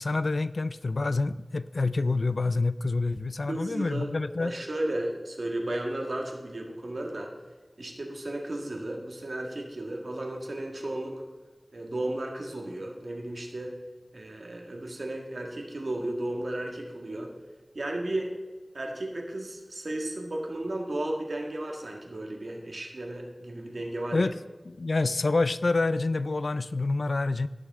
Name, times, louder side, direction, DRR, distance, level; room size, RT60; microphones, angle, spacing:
voice 1, 0.0-4.5 24.1-24.3 24.7-27.5, left 3 dB, 80° left, 15 dB, 0.3 m, -27 dB
voice 2, 3.5-4.1 4.4-7.3 7.8-11.1 11.7-13.8 14.1-17.3 17.7-18.3 18.7-24.3, right 1 dB, 75° right, 1 dB, 1.8 m, -34 dB
17.0 x 6.6 x 3.6 m, 1.3 s
wide cardioid pair, 55°, 0 cm